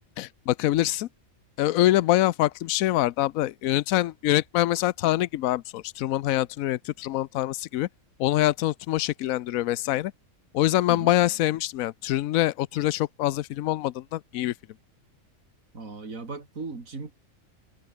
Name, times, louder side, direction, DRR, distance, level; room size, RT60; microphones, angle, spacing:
voice 1, 0.2-1.1 1.6-7.9 8.2-10.1 10.5-14.5, left 15 dB, 85° left, 1.0 m, -25 dB
voice 2, 15.7-17.1, right 4 dB, 80° right, 3.4 m, -37 dB
omnidirectional pair, 1.4 m